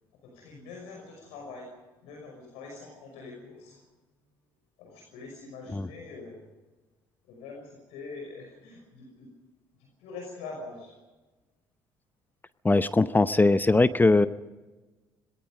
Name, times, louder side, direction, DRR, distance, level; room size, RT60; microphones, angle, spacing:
voice 1, 0.2-1.7 2.0-3.8 4.8-6.5 7.3-9.3 9.8-11.0, left 3 dB, 65° left, 1 dB, 5.7 m, -44 dB
voice 2, 12.6-14.3, left 3 dB, 15° left, 14 dB, 0.8 m, -21 dB
27.0 x 20.5 x 5.2 m, 1.2 s
figure-of-eight pair, 55°, 11 cm